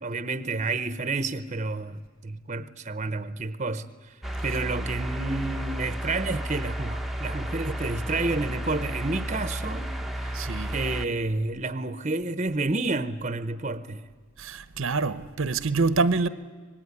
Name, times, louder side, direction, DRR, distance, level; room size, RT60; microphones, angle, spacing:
voice 1, 0.0-4.1 4.4-10.4 10.7-14.1, right 3 dB, 30° right, 0.8 m, -30 dB
sound 1, 4.2-11.1, right 1 dB, ahead, 0.8 m, -32 dB
voice 2, 10.3-10.7 14.4-16.3, right 4 dB, 70° right, 0.9 m, -26 dB
25.0 x 19.5 x 9.7 m
head